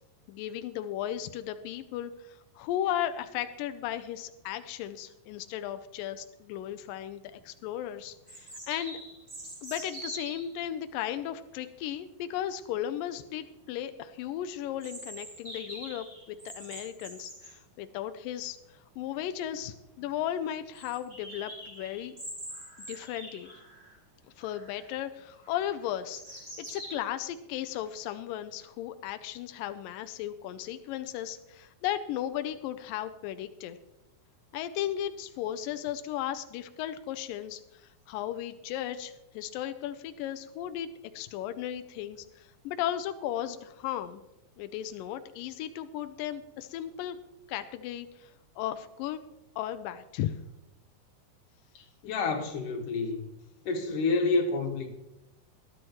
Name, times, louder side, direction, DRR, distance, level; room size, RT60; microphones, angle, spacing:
voice 1, 0.3-9.0 9.6-18.6 19.0-22.2 22.8-23.5 24.4-26.2 26.7-33.8 34.5-37.6 38.1-40.9 41.1-44.2 44.6-47.2 47.5-48.3 48.6-49.2 49.6-50.3, left 11 dB, 90° left, 2.0 m, -35 dB
sound 1, 7.3-7.4 8.3-10.5 14.8-17.5 19.2-19.3 19.5-19.6 20.0-20.1 20.7-24.0 24.4-24.9 25.4-26.9, right 1 dB, 20° right, 5.4 m, -44 dB
voice 2, 51.7-53.3 53.7-54.9, left 3 dB, 60° left, 2.8 m, -29 dB
19.5 x 11.5 x 3.0 m
omnidirectional pair, 4.6 m